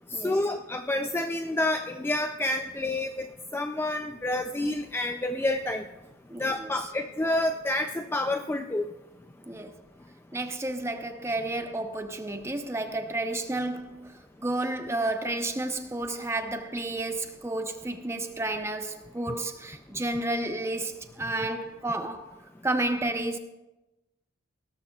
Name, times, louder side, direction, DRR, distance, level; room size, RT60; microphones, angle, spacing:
voice 1, 0.2-3.3 3.5-5.8 6.4-8.8, left 1 dB, 10° left, 0.3 m, -28 dB
voice 2, 6.3-6.7 9.5-9.7 10.3-22.3 22.6-23.4, right 2 dB, 15° right, 0.7 m, -31 dB
18.0 x 13.5 x 2.3 m
head